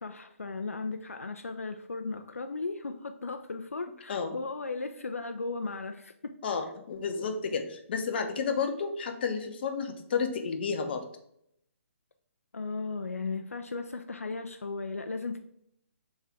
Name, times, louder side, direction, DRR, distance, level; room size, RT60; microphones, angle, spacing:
voice 1, 0.0-6.4 12.5-15.4, left 3 dB, 85° left, 6 dB, 0.4 m, -36 dB
voice 2, 6.4-11.0, left 5 dB, 45° left, 5 dB, 0.6 m, -31 dB
3.5 x 3.2 x 4.3 m, 0.74 s
figure-of-eight pair, 135°, 8 cm